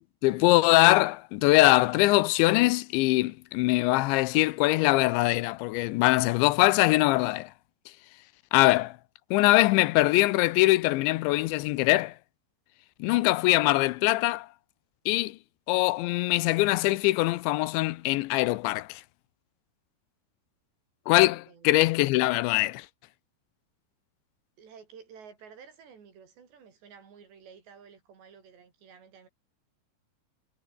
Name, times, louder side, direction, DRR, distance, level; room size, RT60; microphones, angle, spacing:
voice 1, 0.2-7.5 8.5-9.0 9.3-12.1 13.0-14.5 15.1-15.4 15.7-19.0 21.1-22.9, left 19 dB, 85° left, 3.0 m, -22 dB
voice 2, 24.6-29.3, right 6 dB, 65° right, 6.7 m, -52 dB
omnidirectional pair, 5.3 m